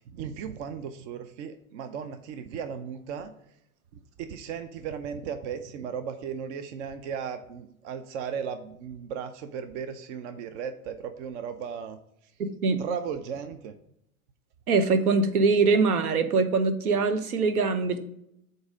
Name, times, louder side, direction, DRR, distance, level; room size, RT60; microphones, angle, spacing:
voice 1, 0.1-3.3 3.9-12.0 12.8-13.7, right 7 dB, 55° right, 9 dB, 0.6 m, -36 dB
voice 2, 12.4-12.8 14.7-18.0, right 4 dB, 75° right, 9 dB, 0.9 m, -23 dB
7.8 x 2.7 x 5.0 m, 0.76 s
hypercardioid pair, 95°, 44 cm